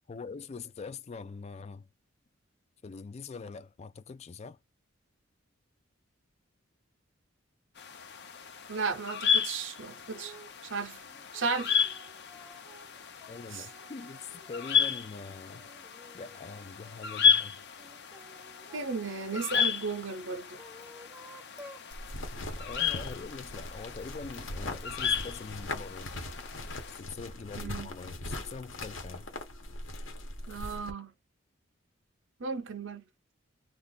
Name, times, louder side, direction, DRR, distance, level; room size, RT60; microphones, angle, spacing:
voice 1, 0.1-1.9 2.8-4.6 13.3-15.6 16.1-17.6 22.6-26.1 26.9-29.3, left 4 dB, 30° left, 0.3 m, -43 dB
sound 1, 7.8-27.0, left 6 dB, 55° left, 0.7 m, -33 dB
voice 2, 8.7-10.4 10.6-11.0 11.3-11.7 13.5-13.7 18.7-20.6 27.6-27.9 30.5-31.1 32.4-33.0, right 4 dB, 65° right, 0.7 m, -35 dB
sound 2, 10.1-10.6 11.0-15.1 15.5-17.1 17.8-19.4 20.2-21.9, equal, 10° right, 0.6 m, -54 dB
sound 3, 21.9-30.9, left 2 dB, 70° left, 1.1 m, -40 dB
2.5 x 2.4 x 3.8 m
head